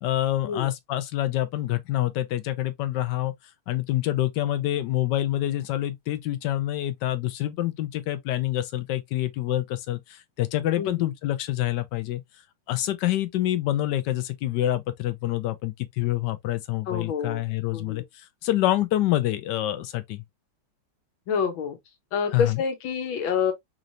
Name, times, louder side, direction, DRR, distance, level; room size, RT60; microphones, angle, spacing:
voice 1, 0.0-3.3 3.7-12.2 12.7-20.2 22.3-22.6, left 14 dB, 70° left, 1.2 m, -27 dB
voice 2, 10.8-11.1 16.9-17.4 17.7-18.0 21.3-21.8 22.1-23.5, left 6 dB, 85° left, 1.7 m, -27 dB
4.0 x 3.2 x 2.5 m
omnidirectional pair, 2.1 m